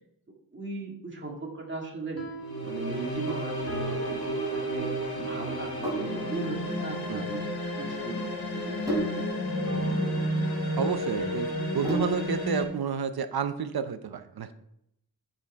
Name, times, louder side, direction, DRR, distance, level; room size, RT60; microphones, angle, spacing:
voice 1, 0.5-2.3 2.6-4.9 5.2-9.2, right 3 dB, 30° right, -1 dB, 2.1 m, -38 dB
sound 1, 2.0-5.4 9.7-12.2, right 1 dB, 40° left, 1.9 m, -45 dB
sound 2, 2.4-12.6, equal, 80° left, 1.8 m, -31 dB
Sink (filling or washing), 3.1-12.4, right 1 dB, 10° right, 3.3 m, -37 dB
voice 2, 10.8-11.5 11.7-14.5, right 6 dB, 80° right, 11 dB, 0.7 m, -30 dB
9.8 x 5.3 x 3.5 m, 0.76 s
wide cardioid pair, 110°, 37 cm